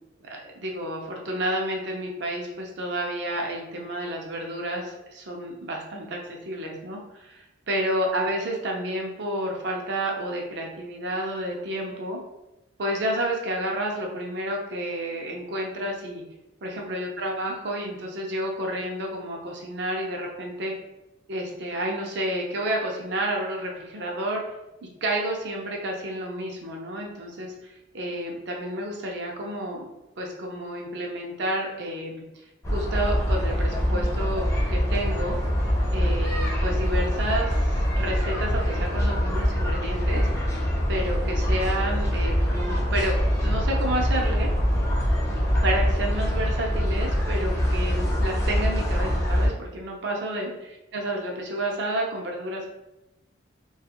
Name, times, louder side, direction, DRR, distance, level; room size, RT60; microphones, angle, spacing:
voice 1, 0.2-12.2 12.8-16.2 16.6-20.7 21.3-24.4 24.8-29.8 30.2-32.2 32.7-35.4 35.9-40.2 40.9-44.5 45.6-50.5 50.9-52.7, right 1 dB, 60° right, 0 dB, 0.5 m, -30 dB
sound 1, 32.6-49.5, equal, 15° left, 0.5 m, -24 dB
2.4 x 2.3 x 2.9 m, 0.94 s
head